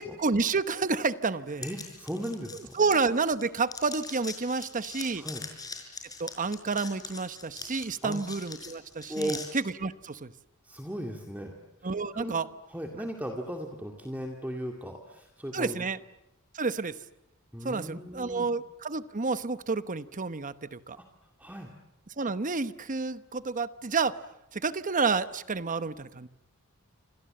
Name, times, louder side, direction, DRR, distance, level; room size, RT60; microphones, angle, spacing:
voice 1, 0.0-1.6 2.7-5.2 6.2-10.3 11.8-12.5 15.5-16.0 16.5-17.0 17.6-21.0 22.2-24.2 24.5-26.3, right 4 dB, 35° right, 13 dB, 1.0 m, -30 dB
sound 1, 1.6-3.4 3.7-9.5, left 4 dB, 15° left, 5.4 m, -42 dB
voice 2, 1.6-2.8 5.2-5.4 8.0-8.3 9.1-9.4 10.6-11.6 12.1-12.4 12.7-15.8 17.5-18.5 21.0-21.1 21.4-21.7, equal, 10° right, 2 dB, 2.2 m, -37 dB
28.0 x 26.5 x 7.8 m, 0.89 s
head